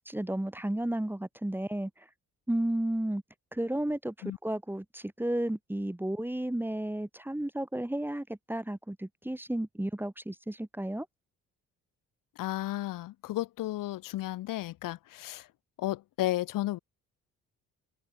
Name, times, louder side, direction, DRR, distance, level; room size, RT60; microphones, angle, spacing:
voice 1, 0.0-2.1 2.5-3.2 3.5-11.1, right 1 dB, 5° right, 2.4 m, -33 dB
voice 2, 12.3-15.5 15.8-16.8, left 15 dB, 85° left, 3.3 m, -33 dB
cardioid pair, 90°, 32 cm